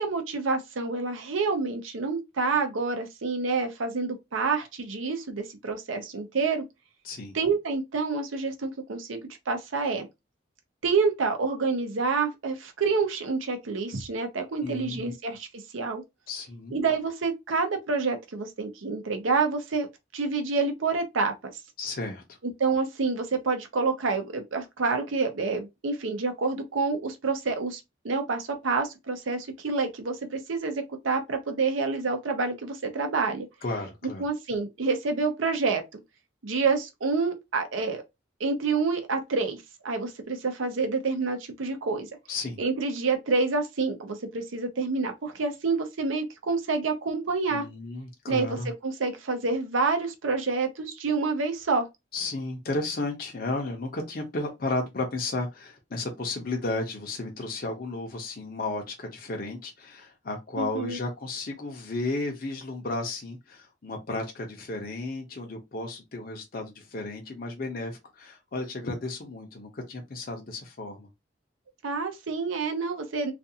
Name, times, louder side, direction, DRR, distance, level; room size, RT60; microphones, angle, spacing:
voice 1, 0.0-6.6 7.3-9.2 9.5-10.1 10.8-15.5 15.7-16.0 16.7-19.9 20.1-21.3 22.6-27.8 28.0-33.5 34.2-35.8 36.4-38.0 38.4-42.1 42.6-47.6 48.3-48.6 48.8-51.9 60.6-61.0 71.8-73.3, right 4 dB, 85° right, 0.6 m, -28 dB
voice 2, 7.0-7.4 14.6-15.1 16.3-16.8 21.8-22.4 33.6-34.2 42.3-42.6 47.5-48.7 52.1-71.1, left 2 dB, 45° left, 0.6 m, -33 dB
2.5 x 2.3 x 2.7 m
head